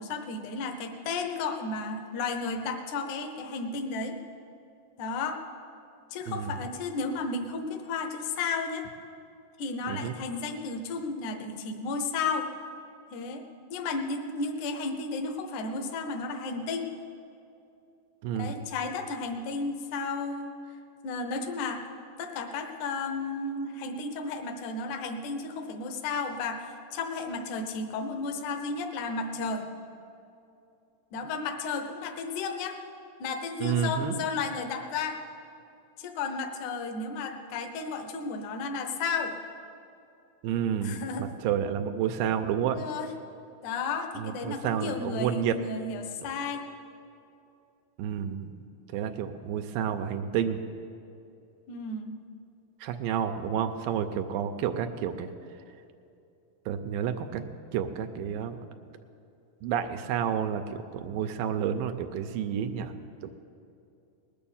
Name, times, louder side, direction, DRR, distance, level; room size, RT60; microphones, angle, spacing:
voice 1, 0.0-4.2 5.0-5.4 6.1-8.9 9.6-12.5 13.1-13.4 13.7-16.9 18.4-20.5 21.0-21.8 22.2-29.7 31.1-32.8 33.2-35.2 36.0-39.4 40.8-41.3 42.7-43.1 43.6-46.6 51.7-52.2, left 4 dB, 70° left, 6 dB, 2.1 m, -33 dB
voice 2, 18.2-18.6 33.6-34.2 40.4-42.8 44.2-45.6 48.0-48.5 48.9-50.6 52.8-55.3 56.7-58.6 59.6-63.3, right 8 dB, 85° right, 7 dB, 2.3 m, -30 dB
20.0 x 6.9 x 7.1 m, 2.7 s
omnidirectional pair, 4.1 m